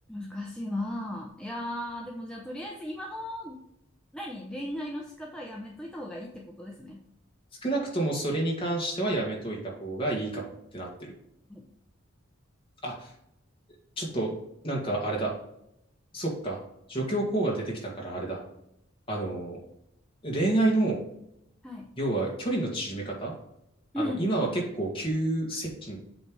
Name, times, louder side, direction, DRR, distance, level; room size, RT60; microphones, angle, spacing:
voice 1, 0.1-3.6 4.1-7.0 11.5-11.7 21.6-21.9 23.9-24.3, left 1 dB, 5° left, -1 dB, 0.6 m, -36 dB
voice 2, 7.6-11.1 12.8-13.1 14.0-14.3 14.6-15.3 16.1-16.6 16.9-18.4 19.1-19.6 20.2-21.0 22.0-23.3 24.0-26.1, right 2 dB, 25° left, -2 dB, 1.9 m, -29 dB
8.0 x 3.3 x 5.4 m, 0.78 s
head